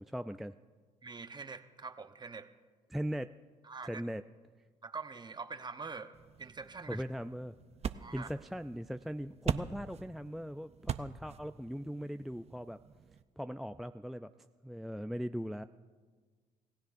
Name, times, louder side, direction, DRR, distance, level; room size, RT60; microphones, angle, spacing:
voice 1, 0.1-0.6 2.9-3.4 3.9-4.2 6.9-7.5 8.1-12.8 13.4-14.3 14.6-15.6, equal, ahead, 9 dB, 0.3 m, -39 dB
voice 2, 1.0-2.5 3.6-4.0 4.8-7.0 8.0-8.3, right 4 dB, 30° right, 9 dB, 0.9 m, -44 dB
sound 1, 6.1-13.2, right 7 dB, 45° right, 0.6 m, -42 dB
27.5 x 16.0 x 2.6 m, 1.5 s
supercardioid pair, 70°, 15 cm